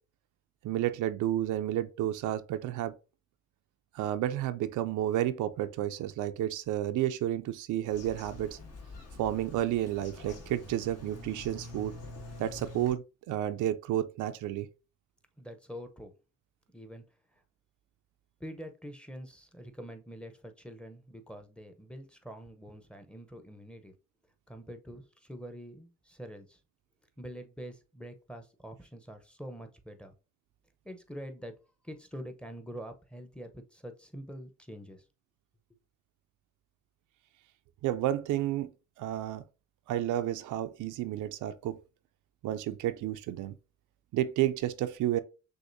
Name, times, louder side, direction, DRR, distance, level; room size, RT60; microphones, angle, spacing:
voice 1, 0.6-2.9 3.9-8.6 9.2-11.9 12.4-14.7 37.8-38.7 39.0-39.4 39.9-41.8 42.4-43.5 44.1-45.2, right 12 dB, 75° right, 0.5 m, -31 dB
Bird vocalization bird call bird song, 7.9-12.9, left 2 dB, 55° left, 1.3 m, -46 dB
voice 2, 15.4-16.1 16.7-17.0 17.3-17.4 18.4-23.9 24.5-26.6 27.2-30.1 30.8-31.5 31.8-35.0, equal, 5° left, 0.7 m, -45 dB
6.4 x 2.5 x 2.6 m
cardioid pair, 90°, 30 cm